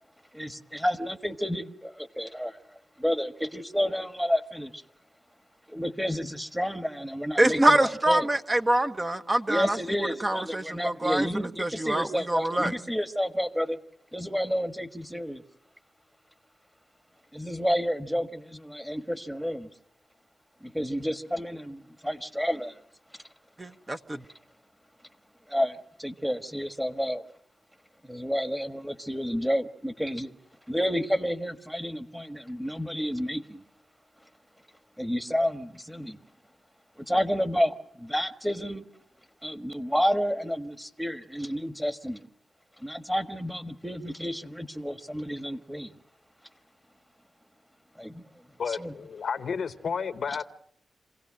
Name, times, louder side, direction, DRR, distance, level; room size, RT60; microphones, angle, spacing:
voice 1, 0.3-2.6 3.0-4.8 5.7-8.3 9.5-13.8 14.1-15.4 17.3-19.7 20.6-22.7 25.5-27.3 28.0-30.3 30.7-33.6 35.0-36.2 37.0-38.9 39.4-42.3 42.8-46.0 48.0-48.2 48.7-48.9, equal, 5° right, 1.5 m, -30 dB
voice 2, 7.4-9.8 10.2-12.7 23.6-24.2, right 1 dB, 25° right, 1.1 m, -25 dB
voice 3, 48.6-50.4, left 6 dB, 70° left, 1.0 m, -31 dB
27.0 x 17.0 x 7.5 m
cardioid pair, 75°, 0 cm